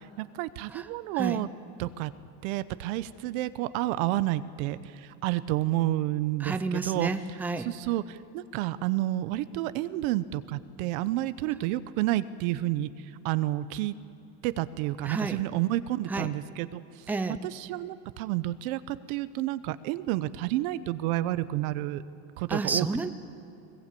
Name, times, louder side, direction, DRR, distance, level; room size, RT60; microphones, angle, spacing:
voice 1, 0.2-1.5 1.8-2.1 2.4-4.8 5.2-7.1 7.6-12.9 13.2-13.9 14.4-16.8 17.4-22.0 22.4-22.9, right 15 dB, 85° right, 14 dB, 0.9 m, -30 dB
voice 2, 6.4-7.7 15.0-15.4 16.1-16.3 17.1-17.4 22.5-23.1, right 3 dB, 5° right, 9 dB, 0.6 m, -30 dB
21.0 x 20.0 x 8.5 m, 2.7 s
cardioid pair, 155°, 41 cm